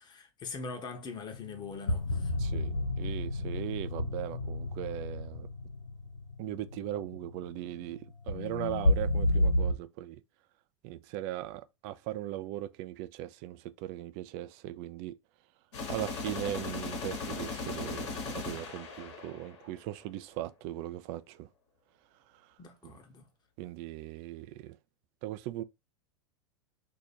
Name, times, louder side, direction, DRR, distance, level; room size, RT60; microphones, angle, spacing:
voice 1, 0.0-2.3 3.4-3.5 22.6-23.3, left 4 dB, 30° left, 1.0 m, -43 dB
sound 1, 1.3-9.7, left 1 dB, 85° left, 0.9 m, -31 dB
voice 2, 2.4-5.5 6.4-8.0 8.3-10.2 10.8-15.1 15.9-21.5 22.8-22.9 23.6-24.8 25.2-25.6, right 14 dB, 45° right, 0.4 m, -39 dB
sound 2, 15.7-19.8, left 4 dB, 65° left, 1.3 m, -38 dB
2.8 x 2.5 x 4.2 m
hypercardioid pair, 90°, 15 cm